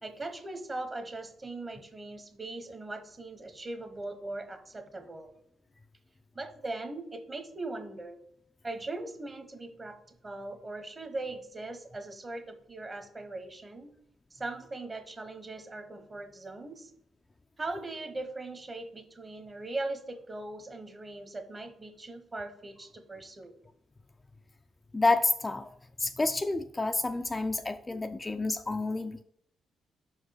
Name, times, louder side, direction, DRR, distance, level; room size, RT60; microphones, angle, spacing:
voice 1, 0.0-5.3 6.3-8.2 8.6-10.0 10.2-13.9 14.3-16.9 17.6-23.5, right 2 dB, 25° right, 8 dB, 0.9 m, -40 dB
voice 2, 24.9-25.7 26.0-29.2, left 3 dB, 20° left, 7 dB, 0.3 m, -29 dB
5.4 x 4.8 x 6.3 m, 0.74 s
cardioid pair, 90°, 0 cm